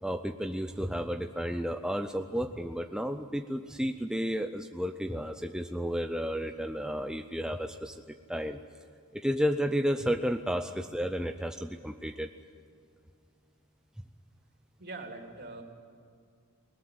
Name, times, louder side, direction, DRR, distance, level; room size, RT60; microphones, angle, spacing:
voice 1, 0.0-8.0 8.3-8.6 9.1-12.3, equal, 5° right, 6 dB, 0.6 m, -32 dB
voice 2, 14.8-15.6, right 3 dB, 50° right, 2 dB, 3.5 m, -43 dB
21.0 x 20.0 x 9.6 m, 2.3 s
head